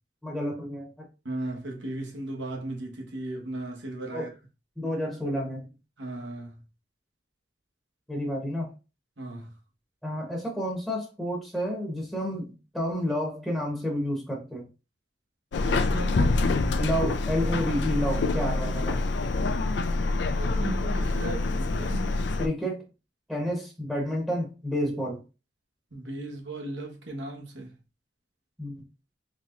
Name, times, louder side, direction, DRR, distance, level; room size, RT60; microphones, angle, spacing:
voice 1, 0.2-1.1 4.1-4.3 4.8-5.7 8.1-8.7 10.0-14.6 16.8-19.1 22.4-22.8 23.3-25.2 28.6-28.8, equal, ahead, 0.9 m, -30 dB
voice 2, 1.2-4.3 6.0-6.6 9.2-9.5 15.6-16.4 20.3-22.1 25.9-27.7, right 2 dB, 80° right, 1.1 m, -36 dB
Subway metro underground, 15.5-22.5, left 3 dB, 65° left, 0.4 m, -26 dB
4.2 x 3.1 x 2.4 m
head